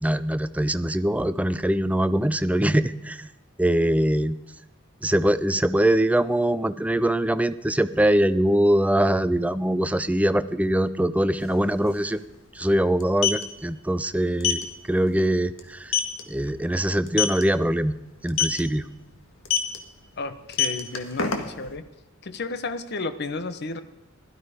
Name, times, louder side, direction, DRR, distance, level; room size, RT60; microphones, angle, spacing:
voice 1, 0.0-3.3 3.6-4.4 5.0-12.2 12.5-14.6 14.9-15.9 16.3-18.0 18.2-18.8, right 1 dB, 5° right, 13 dB, 0.5 m, -22 dB
sound 1, 11.4-11.5 11.7-11.9 13.0-13.4 14.4-14.6 15.1-15.2 15.6-15.7 15.9-16.2 17.1-17.4 18.3-18.6 19.5-19.8 20.4-21.7, left 8 dB, 75° left, 1.8 m, -23 dB
voice 2, 20.2-21.9 22.2-23.8, left 3 dB, 55° left, 11 dB, 1.0 m, -32 dB
16.5 x 12.5 x 5.1 m, 1.0 s
head